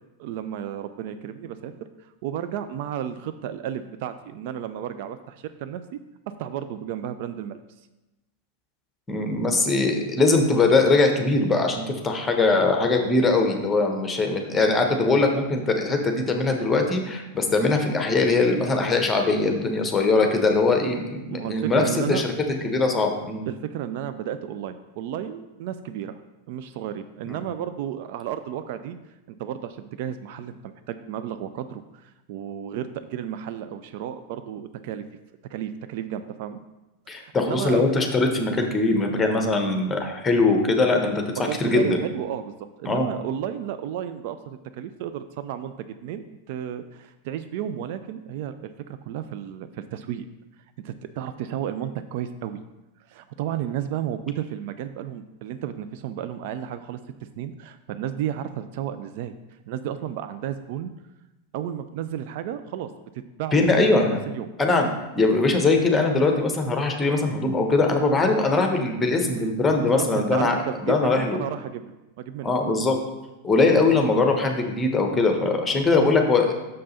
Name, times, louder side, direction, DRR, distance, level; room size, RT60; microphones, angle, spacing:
voice 1, 0.2-1.7 2.0-6.0 6.4-7.6 21.3-22.2 23.5-26.2 26.5-29.0 29.4-35.0 35.5-36.6 37.1-37.8 41.3-42.5 42.8-50.3 50.8-52.6 53.1-57.0 57.4-59.3 59.7-60.9 61.5-62.9 63.1-64.5 69.8-71.8 72.2-72.5, right 10 dB, 50° right, 10 dB, 0.3 m, -33 dB
voice 2, 9.1-22.3 22.6-23.4 27.3-27.4 37.1-41.2 41.6-41.9 42.8-43.1 63.5-64.2 64.6-64.9 65.2-70.5 70.8-71.4 72.4-73.0 73.4-76.5, left 3 dB, 15° left, 3 dB, 1.0 m, -21 dB
6.6 x 5.3 x 4.0 m, 1.0 s
figure-of-eight pair, 90°, 0 cm